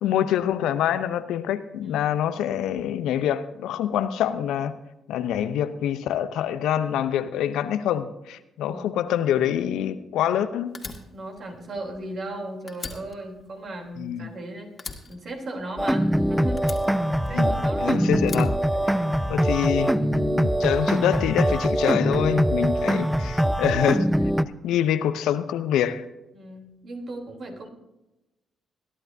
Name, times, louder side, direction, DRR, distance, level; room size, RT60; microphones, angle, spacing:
voice 1, 0.0-4.7 5.1-10.8 14.0-14.3 17.3-18.5 18.9-19.0 19.3-24.1 24.6-26.0, left 10 dB, 70° left, 13 dB, 0.7 m, -25 dB
voice 2, 1.8-2.1 8.6-9.0 11.1-14.7 15.1-17.0 17.3-18.0 26.3-27.7, right 1 dB, 55° right, 2 dB, 3.3 m, -37 dB
Fire, 10.7-12.4 12.7-14.4 14.8-16.1 16.6-17.7 18.2-19.4, left 4 dB, 40° left, 2.1 m, -41 dB
sound 1, 15.8-24.4, equal, 5° right, 0.7 m, -23 dB
22.0 x 11.5 x 2.7 m, 0.95 s
hypercardioid pair, 45°, 0 cm